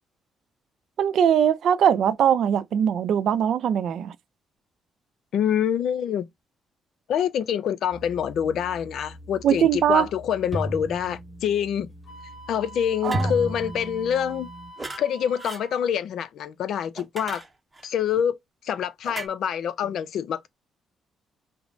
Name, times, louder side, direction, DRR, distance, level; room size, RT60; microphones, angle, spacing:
voice 1, 1.0-4.1 9.4-10.1 13.0-13.3, right 9 dB, 70° right, 0.4 m, -21 dB
voice 2, 5.3-6.3 7.1-11.9 12.5-14.5 15.0-17.4 17.8-18.4 18.6-20.5, left 9 dB, 70° left, 0.4 m, -26 dB
sound 1, 7.9-14.7, equal, ahead, 1.3 m, -35 dB
Wind instrument woodwind instrument, 12.1-15.8, right 1 dB, 50° left, 1.5 m, -45 dB
sound 2, 13.0-13.4 14.8-15.0 15.4-15.6 17.0-17.9 19.0-19.3, right 2 dB, 20° right, 0.7 m, -36 dB
5.0 x 2.0 x 2.6 m
cardioid pair, 90°, 0 cm